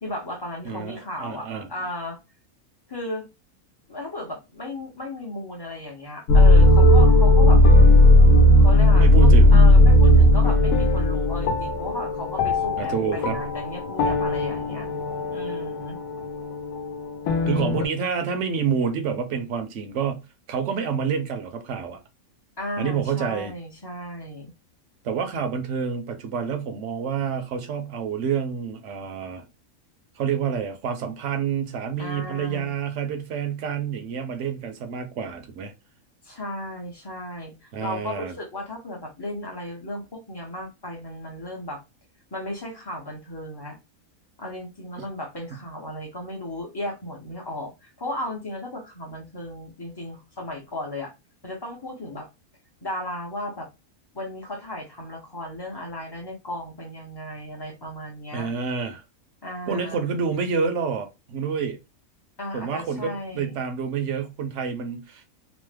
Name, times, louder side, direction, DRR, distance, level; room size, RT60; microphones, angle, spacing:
voice 1, 0.0-2.2 2.9-3.3 3.9-7.6 8.6-14.9 15.3-16.0 17.5-17.7 22.6-24.5 32.0-32.7 36.2-41.8 42.3-43.8 44.4-51.1 51.4-52.3 52.8-53.7 54.1-58.5 59.4-60.1 62.4-63.6, left 1 dB, 25° left, 0.6 m, -35 dB
voice 2, 0.6-1.7 9.0-9.6 12.8-13.4 17.5-20.2 20.5-22.0 22.8-23.5 25.0-29.4 30.2-35.7 37.7-38.3 45.0-45.1 58.3-59.0 59.7-61.8 62.5-65.3, right 6 dB, 65° right, 0.9 m, -28 dB
sound 1, 6.3-17.8, left 1 dB, 75° left, 1.0 m, -16 dB
3.0 x 2.0 x 3.2 m
omnidirectional pair, 1.5 m